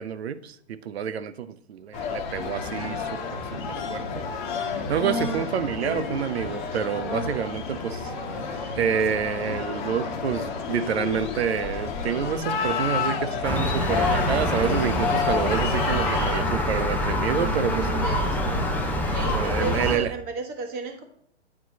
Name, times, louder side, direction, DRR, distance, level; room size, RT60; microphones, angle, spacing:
voice 1, 0.0-4.3 4.6-18.2 18.4-18.7 19.3-20.1, right 8 dB, 60° right, 0.7 m, -28 dB
sound 1, 1.9-16.4, left 5 dB, 40° left, 1.3 m, -30 dB
Gull seagull, 13.4-20.0, left 1 dB, 5° left, 0.6 m, -25 dB
voice 2, 18.0-18.4 19.1-21.0, right 3 dB, 25° right, 1.3 m, -33 dB
9.5 x 4.5 x 4.0 m
figure-of-eight pair, 120°, 35 cm